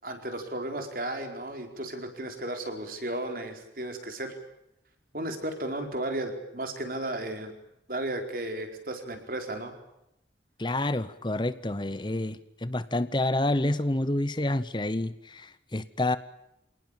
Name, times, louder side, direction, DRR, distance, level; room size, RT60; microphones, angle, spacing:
voice 1, 0.0-4.4 5.1-7.5 7.9-9.7, right 1 dB, 50° right, 5 dB, 4.6 m, -34 dB
voice 2, 10.6-16.2, left 1 dB, 25° left, 15 dB, 0.9 m, -28 dB
27.5 x 19.0 x 9.0 m, 0.84 s
head